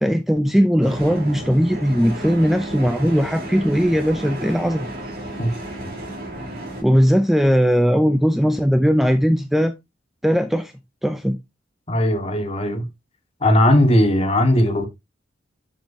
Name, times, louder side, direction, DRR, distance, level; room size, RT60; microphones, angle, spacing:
voice 1, 0.0-5.0 6.8-9.7 10.2-10.7 11.0-11.4, equal, ahead, 0.4 m, -18 dB
sound 1, 0.8-6.8, right 1 dB, 55° right, 3.6 m, -33 dB
voice 2, 11.9-12.9 13.4-14.9, left 1 dB, 30° left, 1.5 m, -18 dB
7.3 x 7.2 x 2.6 m
head